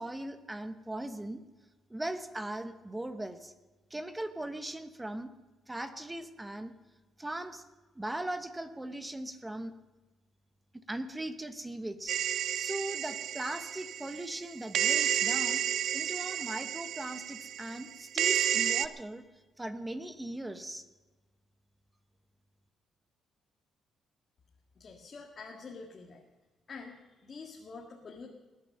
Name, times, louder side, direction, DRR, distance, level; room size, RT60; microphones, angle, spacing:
voice 1, 0.0-1.4 1.9-3.5 3.9-5.3 5.7-6.7 7.2-7.6 7.9-9.7 10.9-12.2 12.5-15.6 15.9-19.3 19.6-20.8, right 1 dB, 15° right, 10 dB, 1.0 m, -39 dB
sound 1, 12.1-14.4 14.7-18.9, right 10 dB, 70° right, 0.6 m, -31 dB
voice 2, 24.8-26.2 26.7-28.3, left 4 dB, 45° left, 0 dB, 1.8 m, -47 dB
20.0 x 9.5 x 6.6 m, 1.2 s
cardioid pair, 90°, 0 cm